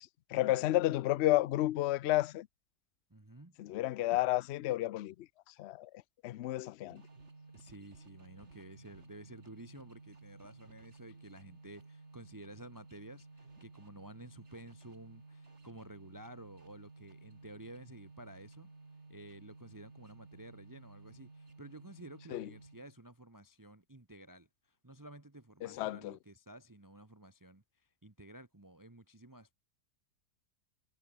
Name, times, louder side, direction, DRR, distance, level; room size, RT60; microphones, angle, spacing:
voice 1, 0.3-2.5 3.6-5.1 5.6-5.9 6.2-7.0 22.3-22.5 25.6-26.1, left 15 dB, 80° left, 0.6 m, -31 dB
voice 2, 3.1-3.6 7.5-18.7 19.1-29.5, right 1 dB, 15° right, 1.4 m, -53 dB
sound 1, 6.9-23.0, right 3 dB, 45° right, 3.4 m, -55 dB
omnidirectional pair, 1.7 m